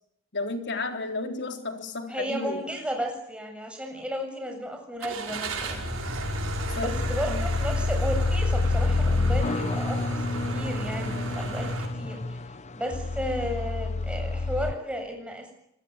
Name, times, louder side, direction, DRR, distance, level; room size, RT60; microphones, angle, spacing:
voice 1, 0.3-2.6 6.8-6.9 7.3-7.5, left 3 dB, 60° left, 4 dB, 3.6 m, -32 dB
voice 2, 2.1-5.9 6.7-15.5, equal, 5° right, 3 dB, 7.6 m, -34 dB
Car / Engine starting, 5.0-11.9, right 1 dB, 80° right, 5.6 m, -34 dB
sound 1, 5.3-14.7, left 3 dB, 35° left, 0.9 m, -28 dB
26.5 x 20.5 x 9.7 m, 0.78 s
head